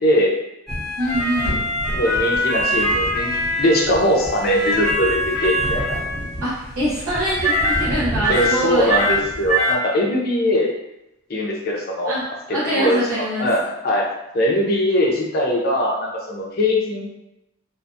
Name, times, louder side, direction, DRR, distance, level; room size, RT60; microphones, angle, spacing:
voice 1, 0.0-0.3 1.9-6.0 8.3-10.7 11.3-12.1 12.7-14.0 14.3-17.1, equal, 45° left, -2 dB, 0.5 m, -21 dB
sound 1, 0.7-9.8, equal, ahead, 0.8 m, -23 dB
voice 2, 1.0-1.6 6.4-8.9 12.1-12.2 12.5-13.5, equal, 70° right, -12 dB, 0.8 m, -24 dB
2.5 x 2.2 x 2.6 m, 0.90 s
head